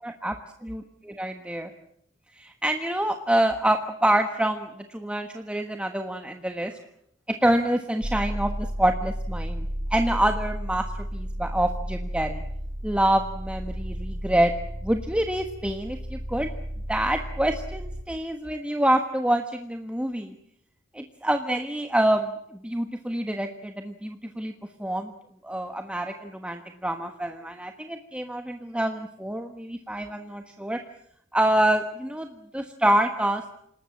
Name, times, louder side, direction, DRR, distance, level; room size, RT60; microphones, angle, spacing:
voice 1, 0.0-0.4 0.6-1.7 2.3-6.8 7.3-12.4 12.8-14.5 14.8-16.5 16.9-20.3 20.9-24.5 24.8-25.1 25.4-30.8 31.3-33.5, right 1 dB, 5° right, 5 dB, 1.3 m, -26 dB
sound 1, 8.0-18.0, equal, 50° right, 2.3 m, -33 dB
28.0 x 19.0 x 7.2 m, 0.72 s
head